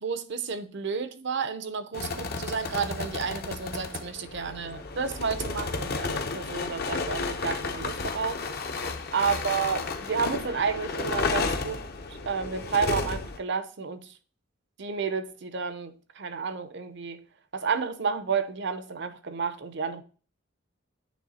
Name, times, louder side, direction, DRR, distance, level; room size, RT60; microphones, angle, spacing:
voice 1, 0.0-8.4 9.1-11.8 12.3-14.1 14.8-17.2 17.5-20.0, right 5 dB, 60° right, 0.7 m, -31 dB
sound 1, 1.9-13.4, left 3 dB, 50° left, 0.7 m, -32 dB
9.4 x 3.2 x 4.2 m
head